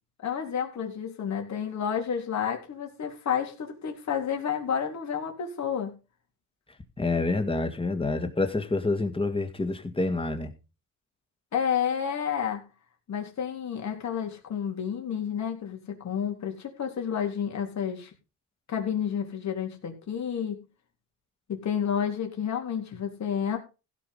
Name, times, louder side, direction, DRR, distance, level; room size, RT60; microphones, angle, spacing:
voice 1, 0.2-5.9 11.5-12.6 13.1-18.1 18.7-20.6 21.5-23.6, left 8 dB, 55° left, 3.7 m, -30 dB
voice 2, 7.0-10.5, left 3 dB, 15° left, 2.0 m, -27 dB
16.0 x 6.1 x 5.5 m
cardioid pair, 120°, 34 cm